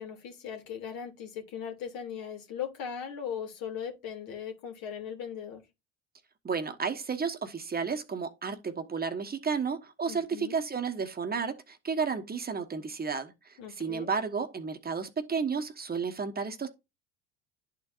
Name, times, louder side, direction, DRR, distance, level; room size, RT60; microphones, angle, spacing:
voice 1, 0.0-5.6 10.1-10.6 13.6-14.1, left 8 dB, 65° left, 2.3 m, -39 dB
voice 2, 6.4-16.7, right 5 dB, 25° right, 1.2 m, -32 dB
11.0 x 4.5 x 2.5 m
hypercardioid pair, 75°, 36 cm